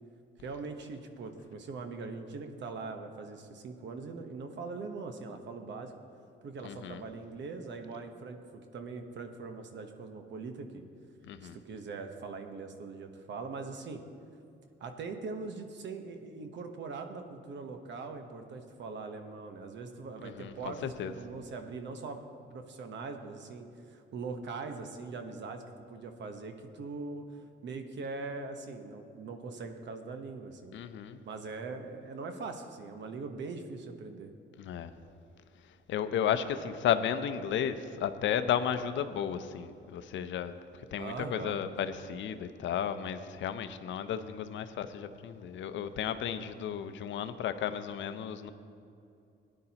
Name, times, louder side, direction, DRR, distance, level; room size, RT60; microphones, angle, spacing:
voice 1, 0.4-5.9 6.4-10.8 11.4-14.0 14.8-25.6 25.9-30.8 31.2-34.3 41.0-41.6, right 4 dB, 65° right, 6 dB, 1.1 m, -41 dB
voice 2, 6.6-7.0 11.2-11.6 20.2-21.1 30.7-31.2 34.6-34.9 35.9-40.5 40.9-48.5, left 9 dB, 70° left, 11 dB, 0.6 m, -33 dB
16.5 x 10.0 x 2.9 m, 2.5 s
cardioid pair, 90°, 20 cm